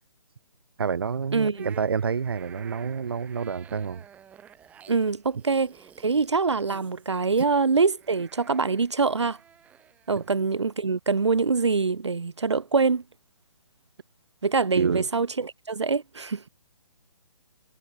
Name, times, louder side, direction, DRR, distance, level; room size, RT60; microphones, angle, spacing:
voice 1, 0.8-4.1 10.2-10.3 14.8-15.1, right 6 dB, 55° right, 0.9 m, -28 dB
voice 2, 1.3-1.7 4.9-5.7 6.0-9.4 10.1-13.0 14.4-16.4, right 4 dB, 70° right, 0.6 m, -24 dB
sound 1, 1.5-10.7, right 9 dB, 10° right, 1.2 m, -52 dB
figure-of-eight pair, 135°, 15 cm